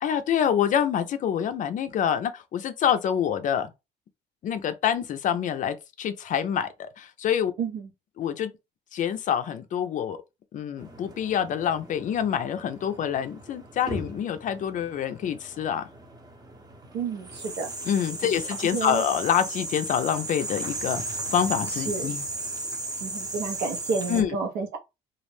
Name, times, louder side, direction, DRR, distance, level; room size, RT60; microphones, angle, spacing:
voice 1, 0.0-3.7 4.4-7.5 8.2-8.5 8.9-10.2 10.5-15.9 17.8-22.2 24.1-24.4, left 9 dB, 50° left, 0.4 m, -26 dB
voice 2, 7.6-7.9 16.9-17.7 18.2-18.4 18.7-19.0 21.8-22.1 23.0-24.8, right 5 dB, 80° right, 0.8 m, -31 dB
sound 1, 10.8-24.2, right 2 dB, 25° right, 0.7 m, -36 dB
2.4 x 2.0 x 3.1 m
cardioid pair, 110°, 17 cm